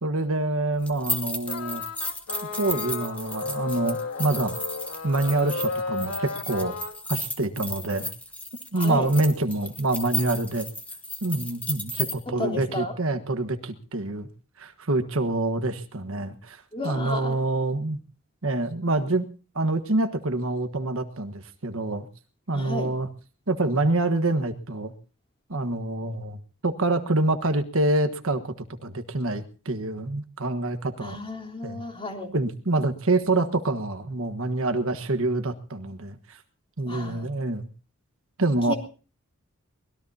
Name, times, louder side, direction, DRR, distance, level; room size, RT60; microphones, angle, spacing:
voice 1, 0.0-1.8 2.6-4.6 5.0-6.8 7.1-8.1 8.7-10.7 11.2-14.3 14.6-18.0 18.4-19.3 19.5-22.1 22.5-23.1 23.5-24.9 25.5-28.5 28.8-31.2 31.6-31.8 32.3-36.4 36.8-37.7 38.4-38.7, right 2 dB, 65° right, 8 dB, 1.4 m, -26 dB
sound 1, 0.8-12.1, left 1 dB, 5° left, 2.3 m, -34 dB
sound 2, 1.5-6.9, left 3 dB, 85° left, 2.4 m, -33 dB
voice 2, 8.7-9.1 12.4-12.9 16.7-17.4 22.5-22.9 31.0-32.3 36.9-37.3 38.7-38.8, left 2 dB, 25° left, 3 dB, 3.6 m, -33 dB
24.0 x 20.5 x 2.8 m, 0.37 s
head